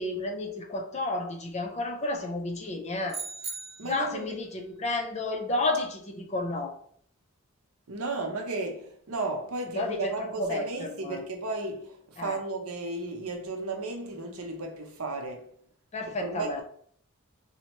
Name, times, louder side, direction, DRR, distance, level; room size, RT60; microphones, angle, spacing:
voice 1, 0.0-3.2 3.8-6.8 9.7-11.3 12.2-12.4 15.9-16.6, left 2 dB, 30° left, 0.5 m, -31 dB
sound 1, 3.1-4.2, right 4 dB, 25° right, 0.5 m, -38 dB
voice 2, 3.8-4.4 7.9-15.4 16.2-16.6, right 3 dB, 90° right, 0.7 m, -34 dB
4.2 x 2.1 x 2.9 m
head